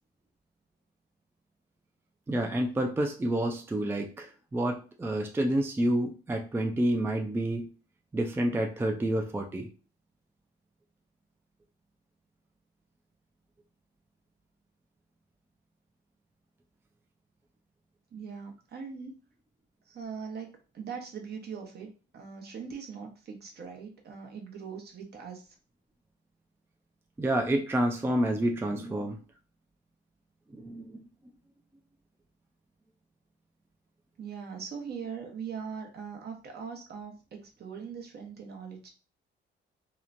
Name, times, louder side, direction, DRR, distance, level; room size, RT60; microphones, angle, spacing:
voice 1, 2.3-7.7 8.1-9.7 27.2-29.2 30.5-31.0, right 1 dB, 10° right, 3 dB, 0.4 m, -29 dB
voice 2, 18.1-19.1 19.9-25.5 34.2-38.9, right 6 dB, 55° right, 2 dB, 0.8 m, -41 dB
3.0 x 2.1 x 2.5 m, 0.35 s
cardioid pair, 90°, 20 cm